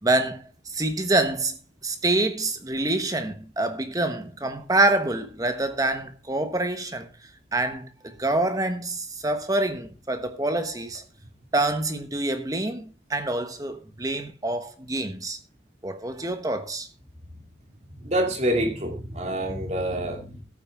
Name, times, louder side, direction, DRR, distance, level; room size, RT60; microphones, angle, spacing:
voice 1, 0.0-7.1 7.5-11.0 11.5-15.4 15.8-16.9, right 2 dB, 20° right, 1.3 m, -26 dB
voice 2, 18.0-20.4, right 1 dB, 35° right, 2.6 m, -26 dB
13.5 x 9.1 x 3.7 m
head